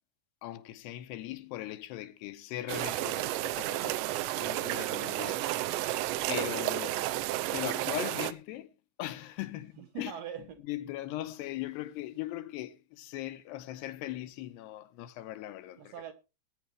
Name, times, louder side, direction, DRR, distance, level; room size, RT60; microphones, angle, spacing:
voice 1, 0.4-4.0 4.4-5.5 6.3-7.0 7.5-8.7 9.0-10.1 10.6-15.9, left 14 dB, 80° left, 2.9 m, -39 dB
sound 1, 2.7-8.3, right 15 dB, 85° right, 3.0 m, -32 dB
voice 2, 5.4-6.1 9.8-10.6 15.8-16.1, right 9 dB, 70° right, 2.3 m, -43 dB
19.5 x 9.6 x 3.2 m
omnidirectional pair, 5.0 m